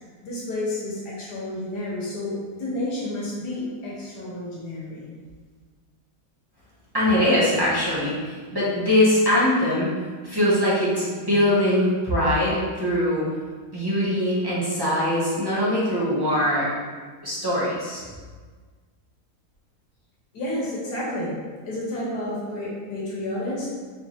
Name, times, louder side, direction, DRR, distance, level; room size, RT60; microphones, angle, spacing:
voice 1, 0.2-5.1 20.3-21.3 21.6-23.7, left 1 dB, 75° left, -6 dB, 1.7 m, -30 dB
voice 2, 6.9-9.9 10.2-13.3 13.7-16.7 17.2-18.0, left 1 dB, 25° right, -8 dB, 0.5 m, -22 dB
4.4 x 3.0 x 2.8 m, 1.5 s
omnidirectional pair, 1.8 m